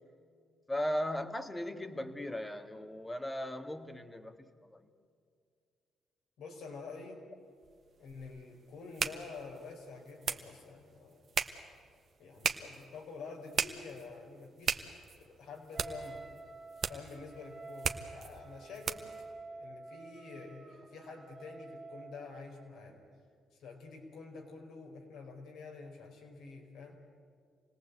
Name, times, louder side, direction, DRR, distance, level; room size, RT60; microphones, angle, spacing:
voice 1, 0.7-4.8, left 1 dB, 15° left, 7 dB, 1.8 m, -37 dB
voice 2, 6.4-7.3 8.0-11.3 12.2-16.3 16.9-19.1 19.5-23.0 23.5-27.0, left 4 dB, 80° left, 2 dB, 4.4 m, -48 dB
sound 1, 7.6-19.2, right 6 dB, 55° right, 1.3 m, -39 dB
Wind instrument woodwind instrument, 15.7-22.4, right 3 dB, 25° right, 1.9 m, -49 dB
27.5 x 18.5 x 8.2 m, 2.2 s
cardioid pair, 80°, 0 cm